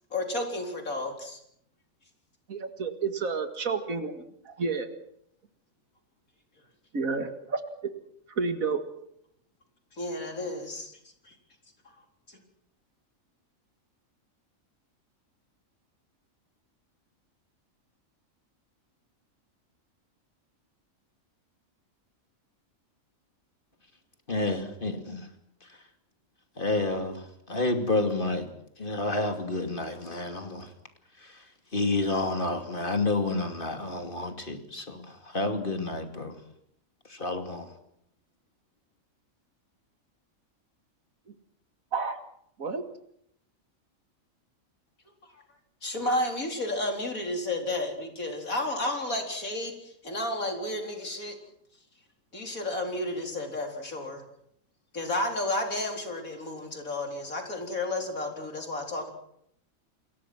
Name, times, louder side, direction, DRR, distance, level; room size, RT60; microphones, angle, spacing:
voice 1, 0.1-1.4 9.9-11.0 11.2-11.3 12.3-12.4 45.2-45.4 45.8-51.4 52.3-54.2 54.9-59.1, left 1 dB, 80° left, 4.6 m, -32 dB
voice 2, 2.5-4.9 6.9-7.6 8.4-8.8 41.9-42.2 42.6-42.8, right 4 dB, 80° right, 2.4 m, -30 dB
voice 3, 24.3-25.3 25.7-25.8 26.6-28.4 28.8-30.7 31.2-31.4 31.7-36.4 37.1-37.7, left 2 dB, 40° left, 2.8 m, -30 dB
29.0 x 21.5 x 6.1 m
omnidirectional pair, 1.4 m